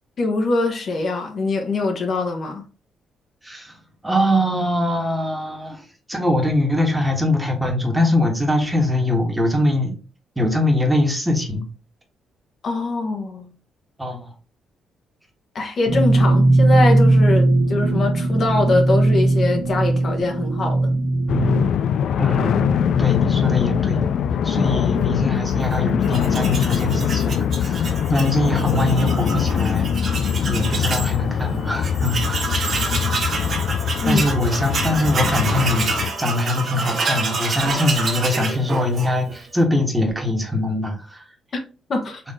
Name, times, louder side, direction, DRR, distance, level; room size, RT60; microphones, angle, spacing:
voice 1, 0.2-2.6 12.6-13.5 15.5-20.9 34.0-34.2 41.9-42.2, left 2 dB, 50° left, 1.2 m, -23 dB
voice 2, 3.4-3.7 4.0-10.0 10.4-11.6 14.0-14.3 22.2-24.0 24.4-32.6 34.0-41.2, left 1 dB, 10° right, 1.4 m, -22 dB
sound 1, 15.9-21.6, right 2 dB, 75° right, 1.4 m, -18 dB
sound 2, 21.3-36.1, left 8 dB, 70° left, 0.4 m, -22 dB
Tools, 26.0-31.1 31.5-31.6 31.8-39.4, right 4 dB, 50° right, 1.2 m, -27 dB
4.3 x 3.0 x 3.7 m
cardioid pair, 90°, 0 cm